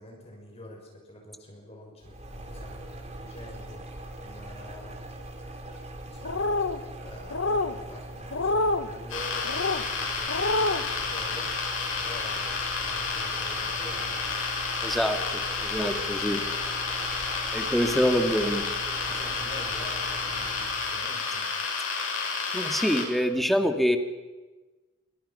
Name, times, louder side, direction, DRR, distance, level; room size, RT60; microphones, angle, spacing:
voice 1, 0.0-3.8 4.2-5.0 6.1-6.6 7.0-11.5 12.0-12.6 12.8-14.2 19.1-21.5, left 1 dB, 30° left, 0 dB, 6.1 m, -46 dB
sound 1, 2.0-20.9, right 2 dB, 35° right, 3.6 m, -41 dB
sound 2, 6.2-6.8 7.3-7.7 8.3-8.9 9.4-9.8 10.3-10.8, left 2 dB, 65° left, 1.3 m, -26 dB
sound 3, 9.1-23.0, left 4 dB, 90° left, 7.5 m, -31 dB
voice 2, 14.8-16.4 17.5-18.6 22.5-24.0, equal, ahead, 5 dB, 1.9 m, -25 dB
28.0 x 24.0 x 5.7 m, 1.2 s
head